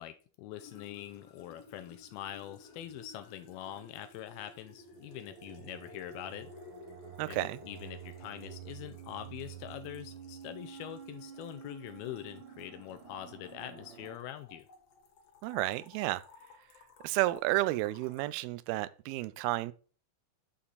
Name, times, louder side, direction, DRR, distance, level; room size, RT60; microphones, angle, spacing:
voice 1, 0.0-6.5 7.3-14.7, left 12 dB, 85° left, 2.5 m, -44 dB
sound 1, 0.6-18.2, left 4 dB, 65° left, 1.6 m, -56 dB
sound 2, 4.8-14.2, right 8 dB, 65° right, 2.6 m, -49 dB
voice 2, 7.2-7.6 15.4-16.2 17.0-19.7, right 17 dB, 85° right, 2.4 m, -31 dB
11.5 x 4.3 x 4.1 m
omnidirectional pair, 4.4 m